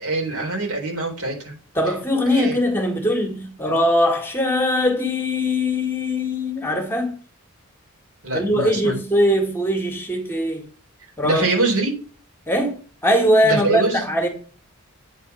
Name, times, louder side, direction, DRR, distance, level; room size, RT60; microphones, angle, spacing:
voice 1, 0.0-1.6 2.3-2.6 8.2-9.0 11.2-12.0 13.4-14.0, right 3 dB, 85° right, 4.1 m, -24 dB
voice 2, 1.7-7.1 8.3-10.6 11.2-11.4 12.5-12.7 13.0-14.3, left 1 dB, 10° left, 1.7 m, -21 dB
9.0 x 4.2 x 7.0 m
head